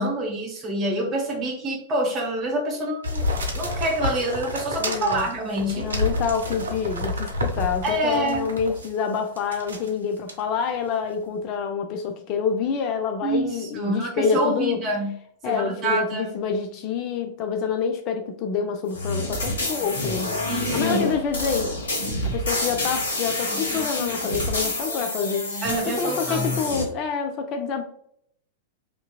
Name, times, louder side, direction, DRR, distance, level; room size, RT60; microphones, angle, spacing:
voice 1, 0.0-3.3 3.5-5.9 7.8-8.5 13.2-15.1 15.4-16.4 20.5-21.1 23.5-23.9 25.6-26.5, right 1 dB, 30° right, 1.0 m, -27 dB
sound 1, 3.0-8.9 9.4-9.9 10.3-10.4, left 1 dB, 75° right, 0.5 m, -29 dB
voice 2, 4.8-5.3 5.7-14.8 15.4-20.3 20.7-21.8 22.2-25.6 25.9-27.8, left 6 dB, 40° left, 0.3 m, -27 dB
sound 2, 18.9-26.8, left 2 dB, 70° left, 0.8 m, -27 dB
2.7 x 2.5 x 2.3 m
figure-of-eight pair, 95°, 0 cm